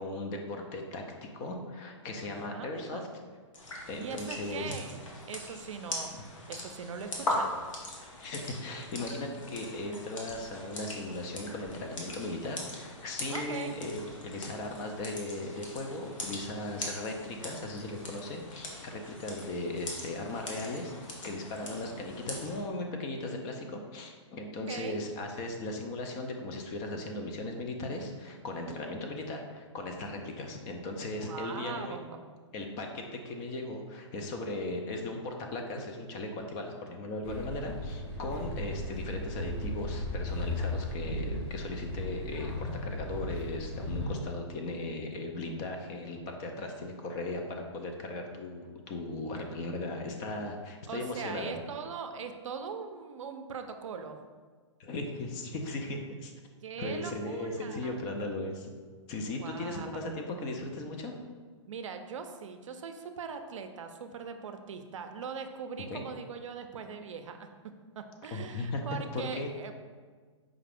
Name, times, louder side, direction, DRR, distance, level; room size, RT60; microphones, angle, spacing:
voice 1, 0.0-3.0 3.9-4.8 8.2-32.0 32.5-51.6 54.8-56.3 56.8-58.7 59.1-61.1 65.9-66.0 68.3-68.9 69.1-69.5, left 2 dB, 25° left, 3 dB, 0.4 m, -37 dB
voice 2, 2.2-3.1 4.0-7.6 13.3-13.7 21.6-22.1 24.7-25.0 28.7-28.8 31.1-32.3 50.9-54.2 56.6-58.0 59.3-60.0 61.7-69.7, right 6 dB, 80° right, 7 dB, 0.4 m, -41 dB
sound 1, 3.5-22.6, left 2 dB, 85° left, 1.0 m, -41 dB
sound 2, 37.2-44.1, left 1 dB, 55° left, 1.4 m, -36 dB
4.7 x 2.4 x 3.4 m, 1.5 s
hypercardioid pair, 145°, 16 cm